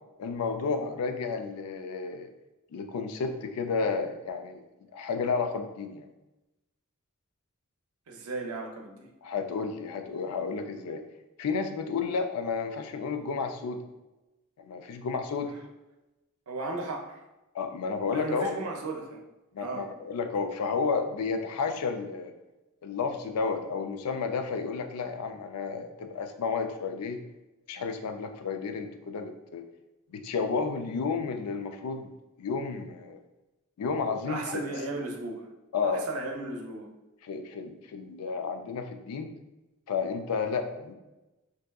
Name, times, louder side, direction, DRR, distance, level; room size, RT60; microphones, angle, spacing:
voice 1, 0.2-2.3 2.7-4.6 4.9-6.1 9.2-11.0 11.4-13.8 14.6-15.5 17.5-18.5 19.5-22.3 22.8-27.2 27.7-29.6 30.1-32.1 32.4-33.2 33.8-34.7 35.7-36.1 37.2-39.3 39.9-40.9, left 5 dB, 90° left, 7 dB, 0.4 m, -31 dB
voice 2, 8.1-9.1 16.5-17.2 18.1-19.2 19.6-19.9 34.3-35.5 35.8-36.9, right 2 dB, 75° right, 2 dB, 0.6 m, -35 dB
3.4 x 2.6 x 2.2 m, 1.0 s
head